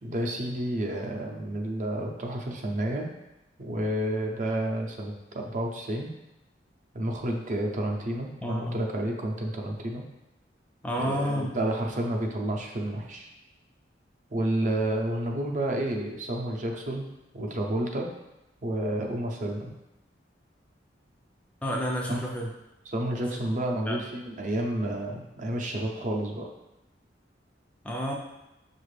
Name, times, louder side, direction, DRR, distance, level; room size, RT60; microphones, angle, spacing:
voice 1, 0.0-3.1 3.6-6.1 6.9-10.0 10.9-13.3 14.3-17.1 17.3-18.1 18.6-19.7 22.1-22.3 22.9-26.5, right 1 dB, 45° right, 1 dB, 0.5 m, -30 dB
voice 2, 8.4-8.9 10.8-11.6 21.6-22.5 23.8-24.0 27.8-28.1, equal, 5° left, -1 dB, 0.3 m, -30 dB
5.7 x 2.4 x 3.2 m, 0.95 s
head